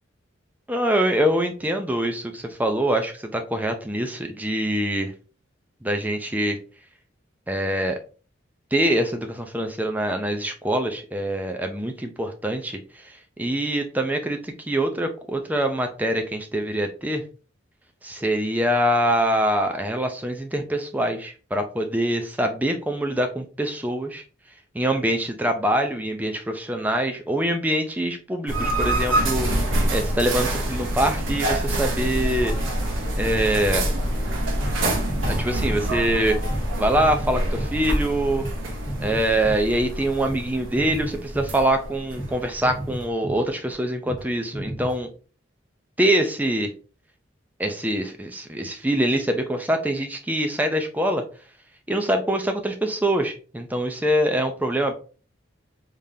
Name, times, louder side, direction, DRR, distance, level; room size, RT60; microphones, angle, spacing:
voice 1, 0.7-5.1 5.8-6.6 7.5-8.0 8.7-17.2 18.0-24.2 24.7-32.6 33.1-33.8 35.3-36.4 36.8-38.5 39.0-45.1 46.0-46.7 47.6-51.2 51.9-54.9, right 1 dB, 10° right, 5 dB, 0.5 m, -24 dB
sound 1, 28.5-43.1, right 1 dB, 80° right, 1.0 m, -26 dB
sound 2, 34.0-40.5 40.7-41.9 42.2-42.4 42.6-43.8 44.1-44.3 44.5-45.0, right 1 dB, 20° left, 1.0 m, -35 dB
3.7 x 3.5 x 2.7 m, 0.37 s
head